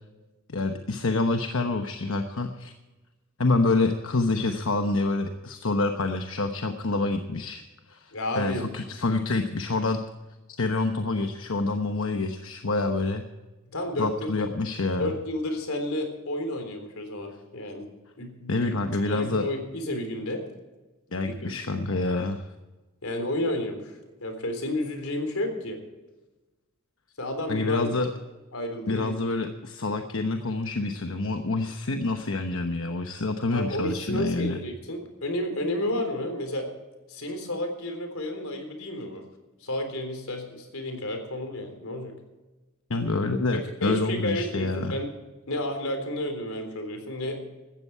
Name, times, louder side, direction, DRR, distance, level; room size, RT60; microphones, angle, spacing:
voice 1, 0.5-2.7 3.4-7.6 7.9-8.0 8.4-10.0 10.5-13.2 14.0-15.1 18.5-19.5 21.1-22.4 27.5-28.1 28.9-34.6 42.9-45.0, left 3 dB, 70° left, 5 dB, 1.0 m, -27 dB
voice 2, 8.1-8.6 13.7-14.4 14.9-17.9 18.2-18.7 19.0-20.4 21.2-21.6 23.0-25.8 27.2-28.0 28.5-29.1 33.5-36.7 37.1-39.2 39.6-42.1 43.5-45.1 45.5-47.4, left 1 dB, 90° left, 5 dB, 3.7 m, -31 dB
16.5 x 13.0 x 4.6 m, 1.1 s
head